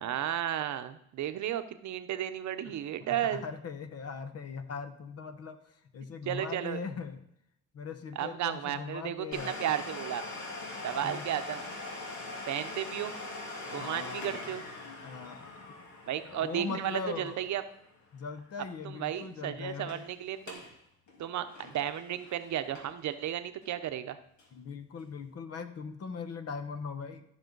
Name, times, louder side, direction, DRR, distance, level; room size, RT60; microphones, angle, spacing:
voice 1, 0.0-3.4 6.3-6.8 8.2-10.2 10.8-11.8 12.5-13.1 13.7-14.6 16.1-17.6 18.8-20.6 21.2-24.2, right 11 dB, 70° right, 10 dB, 0.8 m, -34 dB
voice 2, 3.0-7.2 7.7-9.6 11.0-11.3 13.7-14.6 15.0-15.8 16.2-17.4 18.1-20.1 24.5-27.2, left 5 dB, 55° left, 9 dB, 1.1 m, -40 dB
Domestic sounds home sounds, 9.3-18.8 19.0-19.1 19.7-20.0 20.4-20.7 21.1-23.1 23.6-23.7 24.4-24.5, left 2 dB, 70° left, 2.3 m, -43 dB
13.5 x 5.5 x 3.9 m, 0.74 s
cardioid pair, 90°, 30 cm